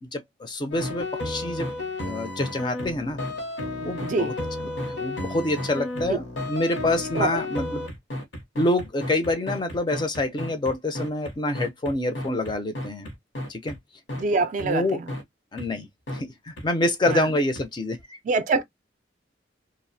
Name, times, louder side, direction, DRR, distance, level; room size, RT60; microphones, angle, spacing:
voice 1, 0.0-1.7 2.0-3.2 3.8-4.3 4.6-7.8 8.6-13.1 13.5-13.8 14.6-15.0 15.5-15.9 16.1-18.2, left 2 dB, 25° left, 0.4 m, -27 dB
sound 1, 0.7-13.8 14.1-14.2 14.6-14.7 15.1-15.2 15.6-15.7 16.1-16.2 16.6-16.7 17.1-17.2 17.6-17.7, left 1 dB, 75° left, 0.8 m, -32 dB
voice 2, 4.0-4.3 6.1-6.2 7.1-7.3 14.2-15.0 17.1-17.3 18.2-18.6, right 3 dB, 45° right, 0.3 m, -24 dB
2.4 x 2.0 x 2.5 m
head